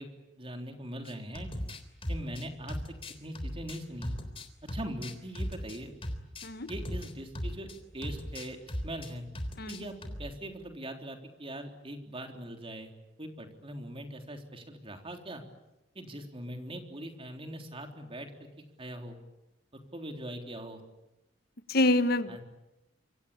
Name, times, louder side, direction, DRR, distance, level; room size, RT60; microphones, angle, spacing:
voice 1, 0.0-1.5 2.1-2.8 3.2-4.1 4.6-5.9 6.7-8.6 8.8-9.2 9.7-12.9 13.2-15.4 16.0-18.5 18.8-19.2 19.9-20.8 22.3-22.4, right 1 dB, 30° right, 4 dB, 3.6 m, -41 dB
sound 1, 1.1-7.8 8.0-9.1 9.3-10.3, equal, 30° left, 3.5 m, -38 dB
voice 2, 21.7-22.4, left 1 dB, 55° left, 11 dB, 1.4 m, -26 dB
27.0 x 24.5 x 8.6 m, 0.94 s
head